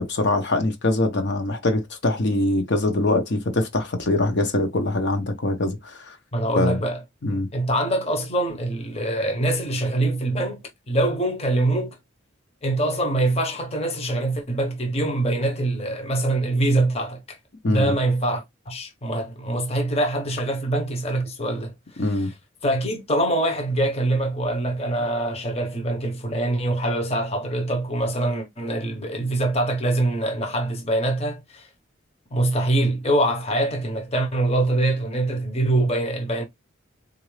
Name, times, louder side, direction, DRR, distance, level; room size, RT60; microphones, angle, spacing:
voice 1, 0.0-6.2 6.5-6.8 7.2-7.5 17.6-17.9 22.0-22.3, left 2 dB, 60° left, 0.8 m, -23 dB
voice 2, 6.3-7.0 7.3-10.6 10.9-12.0 12.6-17.4 17.6-22.3 22.6-31.7 32.3-36.4, right 1 dB, 30° left, 0.9 m, -24 dB
3.9 x 2.6 x 3.1 m
head